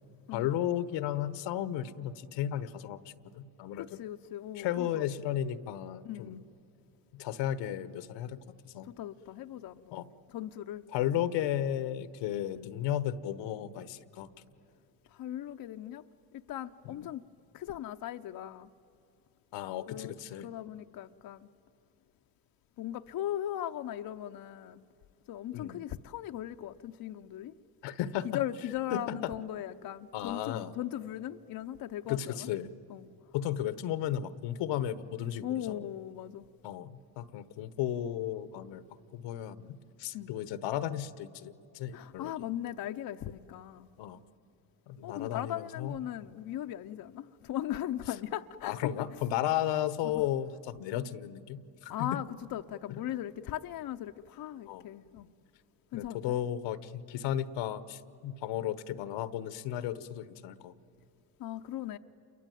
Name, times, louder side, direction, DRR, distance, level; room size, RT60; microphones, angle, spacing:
voice 1, 0.3-4.0 4.6-6.4 7.1-8.9 9.9-10.1 10.9-14.3 19.5-20.5 25.5-25.8 27.8-28.4 28.9-29.3 30.1-30.7 32.1-32.7 33.3-35.8 36.6-38.8 39.1-42.3 44.0-44.2 44.9-45.9 48.6-52.2 54.7-54.9 55.9-60.7, left 11 dB, 80° left, 1.1 m, -34 dB
voice 2, 3.8-5.1 6.0-6.4 8.8-10.0 10.3-10.8 15.1-16.0 16.3-17.2 17.5-18.7 19.9-20.1 20.4-21.5 22.8-24.9 25.3-27.5 28.2-32.5 32.9-33.1 35.4-36.5 40.1-40.3 41.9-43.9 45.0-49.1 50.1-50.2 51.9-55.3 55.9-56.4 61.4-62.0, left 12 dB, 55° left, 0.8 m, -38 dB
28.0 x 23.0 x 9.2 m
supercardioid pair, 85°, 43 cm